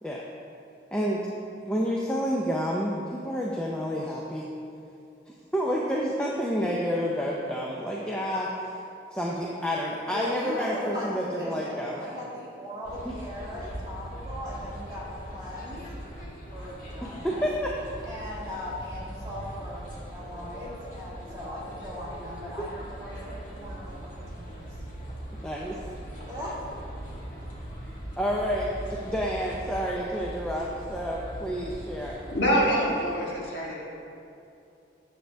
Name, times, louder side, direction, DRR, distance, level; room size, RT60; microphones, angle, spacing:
voice 1, 0.9-1.3 1.6-4.5 5.5-8.5 9.1-12.0 13.0-13.2 17.0-17.7 22.6-22.7 25.4-25.8 28.2-32.2, equal, 5° left, -3 dB, 0.5 m, -29 dB
voice 2, 10.1-15.8 16.5-17.5 18.0-22.7 23.0-24.7 26.2-26.6, equal, 20° right, -7 dB, 1.9 m, -38 dB
sound 1, 12.8-32.7, right 1 dB, 45° left, 1.6 m, -40 dB
voice 3, 32.3-33.8, equal, 65° left, -4 dB, 1.7 m, -25 dB
9.1 x 7.5 x 3.4 m, 2.7 s
head